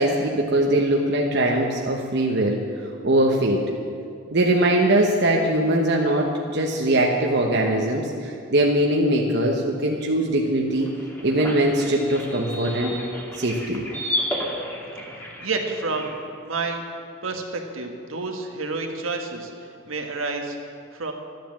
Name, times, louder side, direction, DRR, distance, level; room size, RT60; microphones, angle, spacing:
voice 1, 0.0-2.6 3.0-3.6 4.3-10.9 11.2-12.9 13.4-13.8, right 1 dB, 55° right, 0 dB, 1.1 m, -21 dB
sound 1, 10.7-16.2, equal, 10° left, 1.8 m, -32 dB
voice 2, 15.1-16.2 16.4-16.8 17.2-20.6 20.9-21.1, right 3 dB, 75° right, 3 dB, 1.6 m, -30 dB
12.5 x 10.5 x 7.5 m, 2.4 s
head